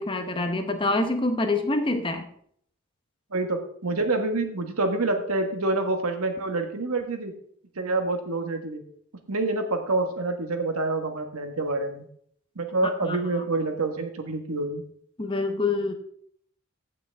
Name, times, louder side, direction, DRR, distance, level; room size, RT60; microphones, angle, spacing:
voice 1, 0.0-2.3 13.1-13.4 15.2-15.9, left 2 dB, 20° left, 6 dB, 0.8 m, -26 dB
voice 2, 3.3-7.3 7.7-8.8 9.3-12.1 12.5-14.8, right 2 dB, 80° right, 6 dB, 1.4 m, -27 dB
15.5 x 6.0 x 3.5 m, 0.64 s
head